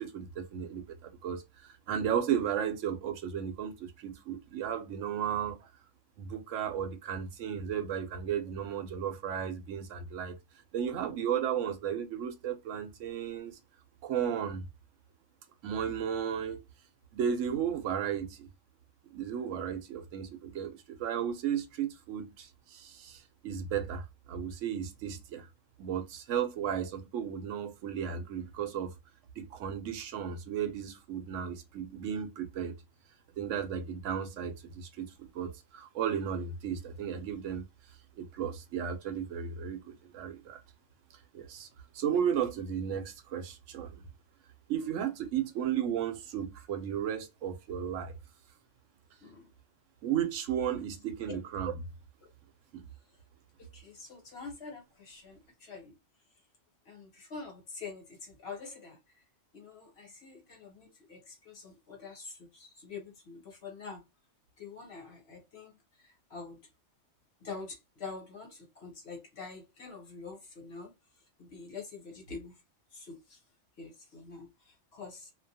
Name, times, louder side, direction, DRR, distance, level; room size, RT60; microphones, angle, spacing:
voice 1, 0.0-5.6 6.2-10.4 10.7-13.6 14.0-14.6 15.6-16.6 17.1-18.5 19.1-25.5 25.8-28.9 29.4-32.7 33.4-37.6 38.2-40.6 41.3-41.7 41.9-44.0 44.7-48.1 50.0-51.8 52.7-52.9, right 8 dB, 80° right, 0.9 m, -34 dB
voice 2, 53.7-55.9 56.9-59.0 59.5-64.0 64.6-65.7 66.3-66.6 67.4-70.9 71.4-72.5 72.9-73.4 73.8-75.3, left 4 dB, 60° left, 1.2 m, -46 dB
2.3 x 2.2 x 2.6 m
omnidirectional pair, 1.3 m